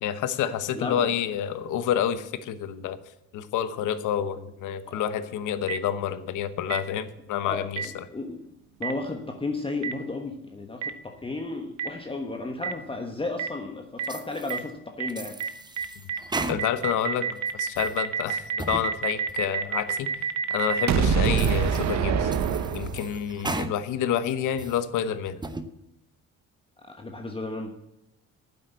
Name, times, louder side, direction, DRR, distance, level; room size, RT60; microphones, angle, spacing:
voice 1, 0.0-3.0 3.3-7.8 16.5-20.1 20.5-22.3 22.7-25.4, left 9 dB, 80° left, 13 dB, 1.0 m, -28 dB
voice 2, 0.7-1.1 4.9-5.0 7.3-8.4 8.8-15.4 21.2-21.4 26.8-27.7, left 3 dB, 15° left, 3 dB, 1.2 m, -34 dB
Boom, 5.7-5.8 6.7-6.8 7.8-7.9 8.8-8.9 9.8-9.9 10.8-10.9 11.8-11.9 12.6-12.7 13.4-13.5 14.0-14.1 14.5-14.6 15.0-15.1 15.4-15.5 15.8-23.3, right 7 dB, 65° right, 1.1 m, -26 dB
sound 1, 14.0-14.6 15.1-17.0 17.4-18.0 18.4-18.9 19.3-19.4 20.0-20.1 20.7-20.8 21.2-21.9 22.3-23.7 24.1-24.8 25.3-25.7, right 2 dB, 15° right, 0.9 m, -36 dB
9.6 x 7.9 x 8.1 m, 0.88 s
cardioid pair, 95°, 30 cm